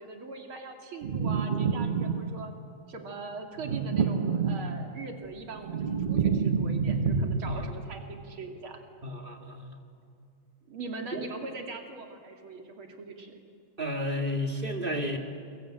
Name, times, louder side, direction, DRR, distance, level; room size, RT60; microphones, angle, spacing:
voice 1, 0.0-2.5 2.9-8.8 10.7-13.3, right 3 dB, 85° right, 3 dB, 3.3 m, -41 dB
sound 1, 1.0-2.6 3.6-5.1 5.4-7.8, right 6 dB, 45° right, 0.6 m, -28 dB
voice 2, 9.0-9.8 11.1-11.3 13.8-15.2, left 1 dB, 25° right, 3 dB, 2.2 m, -32 dB
28.5 x 23.5 x 8.9 m, 2.4 s
omnidirectional pair, 2.2 m